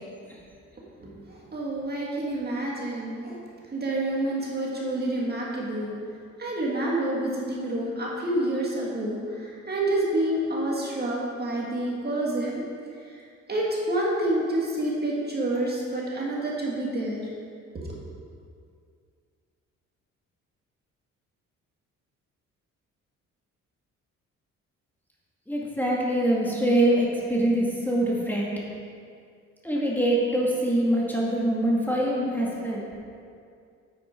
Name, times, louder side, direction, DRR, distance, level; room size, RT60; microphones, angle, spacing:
voice 1, 1.3-3.4 3.7-5.9 6.4-12.6 13.5-17.3 17.7-17.9, right 1 dB, 30° right, -4 dB, 2.1 m, -28 dB
voice 2, 25.5-28.5 29.6-32.9, right 1 dB, 5° left, -4 dB, 2.1 m, -24 dB
9.1 x 8.4 x 4.5 m, 2.3 s
cardioid pair, 90°, 30 cm